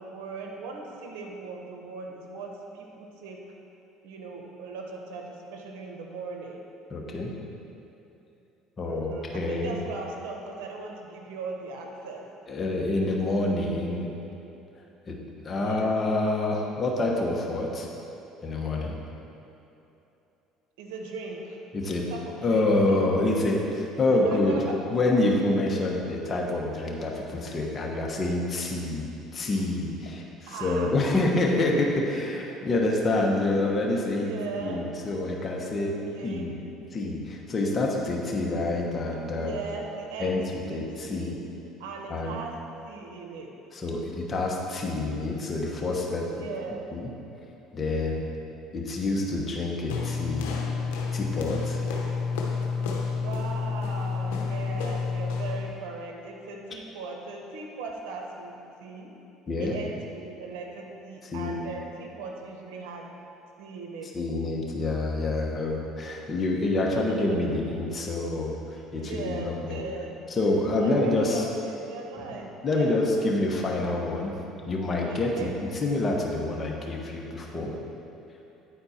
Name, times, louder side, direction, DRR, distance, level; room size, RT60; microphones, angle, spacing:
voice 1, 0.0-3.4 4.0-6.6 8.8-12.3 15.6-15.9 20.8-21.6 21.8-22.9 23.2-23.3 24.2-24.8 30.5-31.0 34.1-34.8 35.8-36.6 39.3-41.4 41.8-42.5 42.8-43.5 46.4-46.9 53.2-59.1 59.6-63.1 63.6-64.1 66.9-67.5 69.0-70.2 70.8-73.1 75.1-75.5, right 4 dB, 85° right, 1 dB, 1.0 m, -38 dB
voice 2, 6.9-7.3 8.8-9.8 12.5-14.1 15.1-17.9 18.4-18.9 21.7-22.0 22.4-24.6 24.9-34.3 34.6-36.0 36.2-36.5 36.9-39.6 40.2-40.4 40.7-41.4 42.1-42.4 43.7-46.4 46.9-47.1 47.7-48.2 48.7-50.7 51.1-51.8 59.5-59.8 61.2-61.6 64.1-69.8 70.3-71.4 72.6-74.3 74.7-75.5 75.8-77.7, left 2 dB, 30° left, -1 dB, 1.2 m, -27 dB
sound 1, 49.9-55.7, left 5 dB, 90° left, 0.8 m, -29 dB
9.4 x 4.3 x 4.3 m, 2.9 s
supercardioid pair, 95°, 0 cm